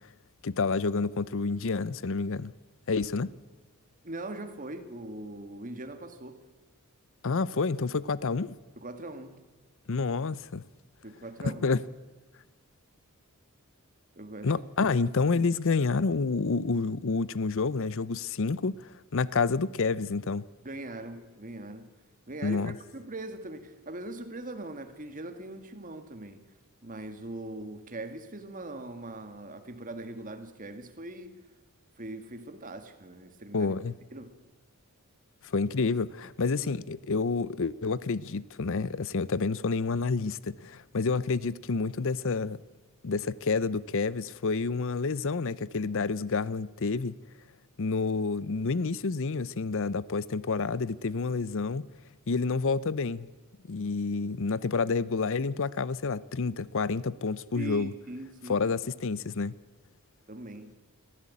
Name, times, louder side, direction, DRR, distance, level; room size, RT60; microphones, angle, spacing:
voice 1, 0.4-2.5 2.9-3.3 7.2-8.5 9.9-10.6 11.4-11.8 14.4-20.4 22.4-22.7 33.5-33.9 35.4-42.6 43.0-47.1 47.8-51.9 52.3-53.3 53.7-57.9 58.5-59.5, left 4 dB, 60° left, 0.6 m, -29 dB
voice 2, 4.0-6.4 8.8-9.4 11.0-11.7 14.2-14.9 20.6-21.9 22.3-26.5 26.8-31.4 32.0-33.7 34.1-34.4 57.6-58.7 60.3-60.7, right 2 dB, 35° right, 1.9 m, -41 dB
23.0 x 15.0 x 8.5 m
head